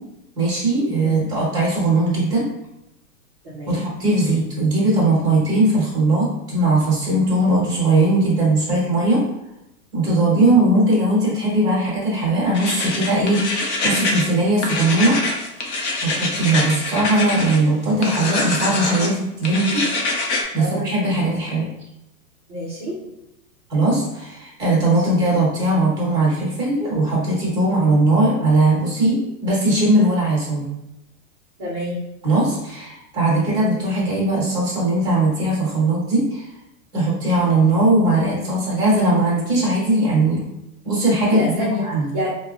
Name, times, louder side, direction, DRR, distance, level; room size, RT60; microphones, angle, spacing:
voice 1, 0.3-2.4 3.7-9.2 9.9-15.1 16.0-20.2 20.5-21.7 23.7-30.7 32.2-36.5 36.9-40.4 40.8-42.1, right 2 dB, 10° right, -6 dB, 1.0 m, -19 dB
voice 2, 3.4-3.8 20.6-20.9 22.5-23.0 31.6-32.0 41.3-41.8 42.1-42.3, left 1 dB, 25° right, -11 dB, 0.3 m, -28 dB
sound 1, 12.5-14.3 14.6-17.6 18.0-19.1 19.4-20.4, left 2 dB, 45° left, 0.5 m, -24 dB
4.4 x 2.0 x 2.4 m, 0.85 s
supercardioid pair, 170°, 47 cm